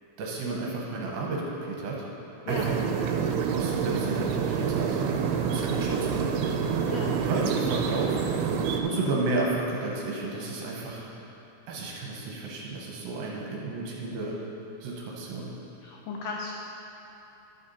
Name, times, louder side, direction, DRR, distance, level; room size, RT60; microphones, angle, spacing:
voice 1, 0.2-2.1 2.5-2.7 3.5-5.0 5.5-6.5 7.3-8.2 8.8-11.0 11.7-14.3 14.8-15.5, right 3 dB, 70° right, -3 dB, 2.6 m, -32 dB
sound 1, 2.5-8.8, right 6 dB, 90° right, 2.7 m, -27 dB
voice 2, 15.8-16.5, left 5 dB, 90° left, -1 dB, 1.9 m, -36 dB
11.5 x 6.8 x 4.2 m, 2.9 s
omnidirectional pair, 4.7 m